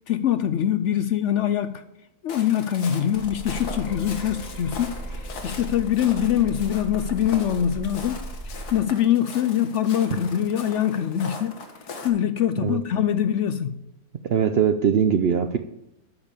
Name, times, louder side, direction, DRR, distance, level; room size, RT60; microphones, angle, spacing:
voice 1, 0.1-1.8 2.2-8.2 8.5-11.5 12.0-13.8, left 10 dB, 65° left, 0.7 m, -23 dB
Walk footsteps, 2.3-12.1, left 4 dB, 85° left, 1.9 m, -40 dB
sound 1, 3.1-8.7, right 1 dB, 30° right, 1.5 m, -37 dB
sound 2, 3.8-8.1, equal, 25° left, 1.8 m, -47 dB
voice 2, 14.2-15.6, right 7 dB, 60° right, 0.6 m, -21 dB
12.5 x 5.5 x 6.8 m
omnidirectional pair, 1.6 m